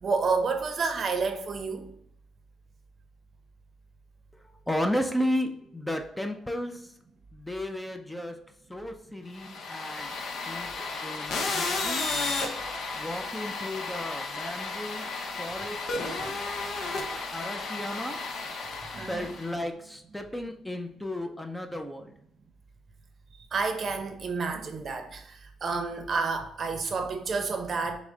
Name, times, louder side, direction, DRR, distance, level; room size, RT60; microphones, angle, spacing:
voice 1, 0.0-1.9 18.9-19.3 23.5-28.0, right 4 dB, 50° right, 6 dB, 0.6 m, -30 dB
voice 2, 4.7-6.9 7.3-8.4 8.7-10.1 10.5-12.1 12.9-15.1 15.4-16.4 17.1-18.2 19.1-22.1, left 1 dB, 5° left, 5 dB, 0.4 m, -34 dB
sound 1, 9.4-19.5, left 3 dB, 70° left, 0.7 m, -33 dB
6.0 x 2.1 x 3.8 m, 0.73 s
cardioid pair, 90°, 0 cm